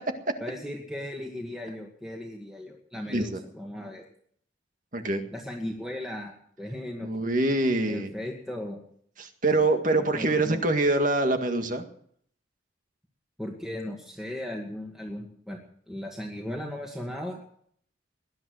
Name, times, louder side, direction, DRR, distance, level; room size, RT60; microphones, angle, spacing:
voice 1, 0.4-4.0 5.3-7.1 7.9-8.8 10.0-10.6 13.4-15.6 15.9-17.4, left 1 dB, ahead, -1 dB, 2.1 m, -37 dB
voice 2, 3.1-3.4 4.9-5.2 7.0-8.1 9.2-11.8, right 2 dB, 45° right, 6 dB, 1.9 m, -25 dB
20.0 x 11.5 x 6.3 m, 0.63 s
head